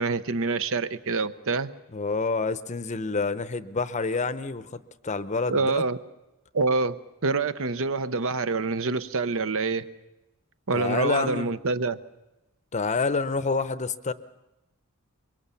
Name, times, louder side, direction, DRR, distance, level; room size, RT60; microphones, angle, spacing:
voice 1, 0.0-1.7 5.5-6.0 6.5-9.8 10.7-12.0, right 3 dB, 65° right, 12 dB, 0.9 m, -26 dB
voice 2, 1.9-5.8 10.7-11.5 12.7-14.1, left 4 dB, 30° left, 13 dB, 0.7 m, -28 dB
24.5 x 23.0 x 7.0 m, 0.98 s
head